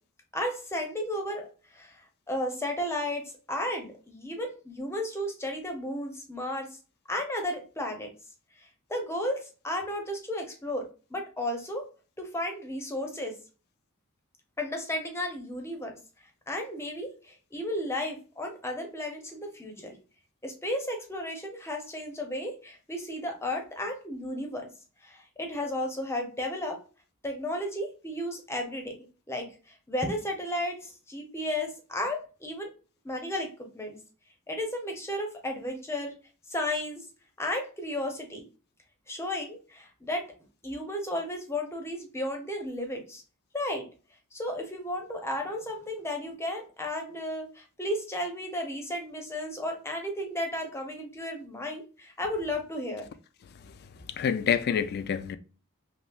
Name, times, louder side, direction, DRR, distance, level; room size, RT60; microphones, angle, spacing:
voice 1, 0.3-1.4 1.7-2.0 2.3-6.7 7.1-8.1 8.9-11.8 12.2-13.3 14.6-16.0 16.5-20.0 20.4-24.7 25.0-26.8 27.2-28.9 29.3-29.5 29.9-32.7 33.0-34.0 34.5-36.1 36.5-37.0 37.4-38.4 39.1-40.3 40.6-43.2 43.5-43.8 44.3-53.1, left 1 dB, 10° left, 0.7 m, -33 dB
voice 2, 54.1-55.4, left 7 dB, 45° left, 0.3 m, -27 dB
5.6 x 2.0 x 2.2 m
head